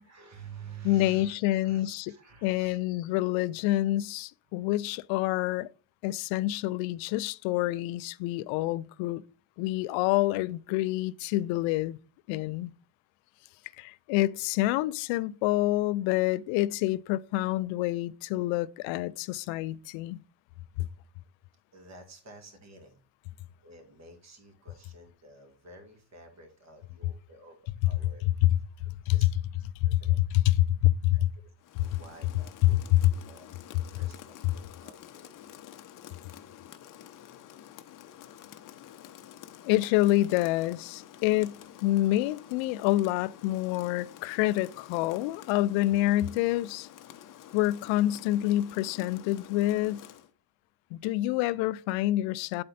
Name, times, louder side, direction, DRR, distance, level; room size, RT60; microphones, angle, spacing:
voice 1, 0.0-2.8 4.6-4.7 21.7-23.0 23.6-28.3 29.1-29.3 29.8-30.2 31.1-31.5 31.8-33.5 34.0-35.6, right 5 dB, 35° right, 2.2 m, -50 dB
voice 2, 0.8-2.1 2.4-5.7 6.0-9.2 9.6-12.0 12.3-12.7 13.8-20.2 20.8-20.9 29.1-29.2 29.8-31.3 31.8-31.9 32.9-33.1 39.6-46.9 47.5-50.0 50.9-52.6, left 16 dB, 80° left, 0.5 m, -27 dB
Rain, 31.6-50.3, left 11 dB, 45° left, 0.8 m, -49 dB
8.8 x 4.2 x 4.1 m
cardioid pair, 115°, 45 cm